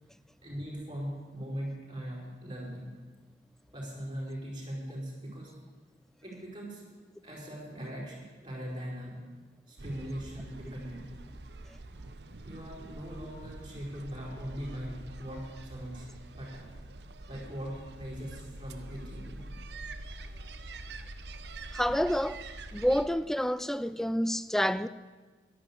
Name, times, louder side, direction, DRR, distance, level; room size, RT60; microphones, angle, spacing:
voice 1, 0.4-2.9 3.7-5.5 6.2-6.8 7.2-9.2 9.7-11.0 12.4-16.7 17.3-19.4, equal, 25° right, 4.7 m, -40 dB
sound 1, 9.8-23.0, right 2 dB, 75° right, 0.8 m, -45 dB
voice 2, 21.7-22.4 22.7-24.9, equal, ahead, 0.3 m, -28 dB
11.5 x 11.0 x 8.6 m
head